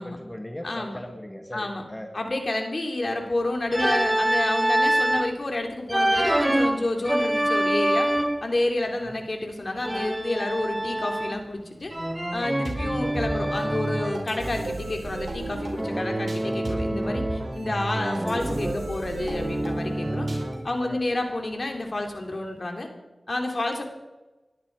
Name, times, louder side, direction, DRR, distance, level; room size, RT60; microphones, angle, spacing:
voice 1, 0.0-2.1 9.1-9.2 12.8-13.0 20.8-21.0 21.3-21.4, left 1 dB, 15° left, 4 dB, 1.9 m, -39 dB
voice 2, 0.6-1.0 1.5-1.8 2.1-8.1 8.4-11.9 12.3-20.3 20.6-22.9 23.3-23.8, left 2 dB, 55° left, 3 dB, 3.3 m, -29 dB
Organ, 3.7-5.4 5.9-8.5 9.8-11.5 11.9-14.2 15.8-17.6 17.9-20.6, right 1 dB, 15° right, 0.5 m, -26 dB
sound 1, 12.6-20.8, right 2 dB, 65° right, 5.3 m, -33 dB
20.0 x 12.5 x 4.8 m, 1.1 s
cardioid pair, 40°, 0 cm